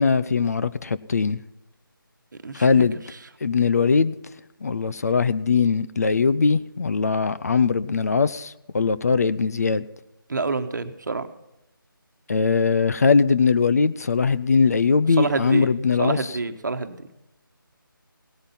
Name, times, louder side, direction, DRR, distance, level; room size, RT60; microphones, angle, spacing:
voice 1, 0.0-1.4 2.5-3.0 3.4-4.2 4.6-9.9 12.3-16.2, left 5 dB, 45° left, 15 dB, 0.5 m, -20 dB
voice 2, 2.4-3.2 10.3-11.3 15.1-15.7 16.0-17.1, right 3 dB, 55° right, 9 dB, 1.2 m, -28 dB
17.5 x 8.8 x 5.6 m, 0.89 s
figure-of-eight pair, 160°, 12 cm